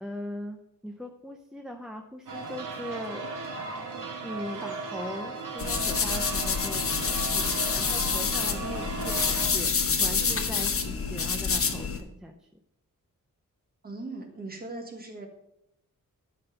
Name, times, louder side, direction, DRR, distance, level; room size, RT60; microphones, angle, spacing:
voice 1, 0.0-3.5 4.2-9.7 10.0-12.4, equal, ahead, 3 dB, 0.5 m, -40 dB
sound 1, 2.3-9.5, right 3 dB, 75° right, 1.7 m, -36 dB
sound 2, 5.6-12.0, left 5 dB, 45° left, 0.8 m, -27 dB
voice 2, 13.8-15.3, right 2 dB, 30° right, 3 dB, 1.4 m, -39 dB
11.5 x 4.3 x 5.4 m, 0.82 s
wide cardioid pair, 150°, 33 cm